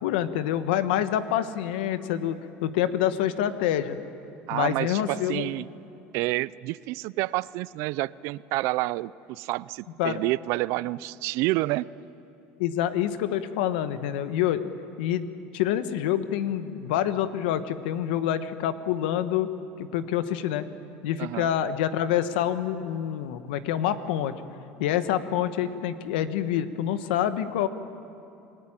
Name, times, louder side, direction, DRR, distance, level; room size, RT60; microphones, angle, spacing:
voice 1, 0.0-4.0 4.5-5.4 10.0-10.2 12.6-14.7 15.0-15.3 15.5-19.5 19.8-20.6 21.0-24.3 24.8-27.7, left 11 dB, 90° left, 11 dB, 1.4 m, -27 dB
voice 2, 4.5-5.7 6.1-11.9 21.2-21.5, right 19 dB, 65° right, 20 dB, 0.5 m, -29 dB
29.5 x 19.5 x 9.0 m, 2.7 s
supercardioid pair, 125°, 5 cm